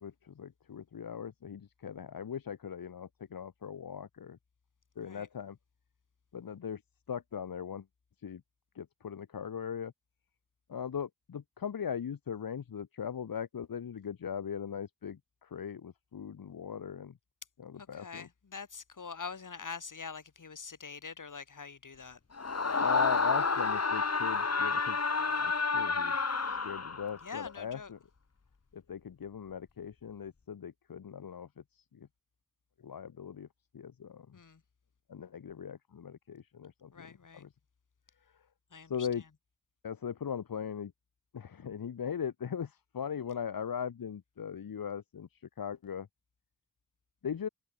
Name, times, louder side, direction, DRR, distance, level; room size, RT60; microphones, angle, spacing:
voice 1, 0.0-4.4 5.0-5.6 6.3-6.8 7.1-7.9 8.2-8.4 8.8-9.9 10.7-17.1 17.6-18.3 22.8-25.0 25.4-28.0 28.7-31.5 31.8-32.1 32.8-33.5 33.7-34.3 35.1-37.5 38.9-39.2 39.8-40.9 41.3-45.3 45.6-46.1 47.2-47.5, left 7 dB, 85° left, 0.8 m, -39 dB
voice 2, 17.8-22.2 27.2-27.9 34.3-34.6 36.9-37.4 38.7-39.1, left 5 dB, 65° left, 1.4 m, -44 dB
Screaming, 22.4-27.2, left 4 dB, 50° left, 1.2 m, -30 dB
open air
wide cardioid pair, 55°, 34 cm